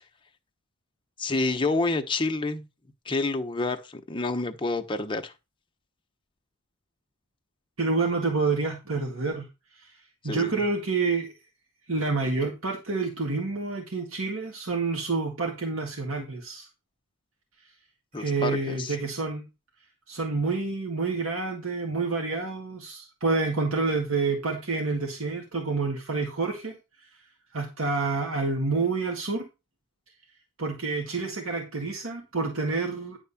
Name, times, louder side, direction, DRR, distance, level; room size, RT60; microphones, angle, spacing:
voice 1, 1.2-2.7 3.1-5.3 10.2-10.5 18.1-18.9, left 3 dB, 25° left, 0.9 m, -28 dB
voice 2, 7.8-9.4 9.7-9.9 10.2-11.3 11.9-16.7 18.2-19.4 20.1-27.1 27.5-29.5 30.6-33.2, right 3 dB, 85° right, 1.8 m, -28 dB
10.5 x 3.6 x 7.0 m
head